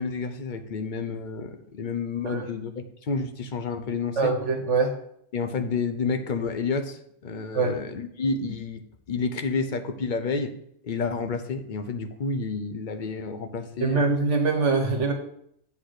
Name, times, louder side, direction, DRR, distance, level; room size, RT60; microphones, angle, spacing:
voice 1, 0.0-4.3 5.3-8.8 9.1-10.5 10.8-14.0, left 4 dB, 50° left, 7 dB, 0.7 m, -30 dB
voice 2, 4.2-4.9 7.5-7.8 13.8-15.1, right 4 dB, 70° right, 4 dB, 1.5 m, -23 dB
8.1 x 3.4 x 6.3 m, 0.71 s
omnidirectional pair, 1.3 m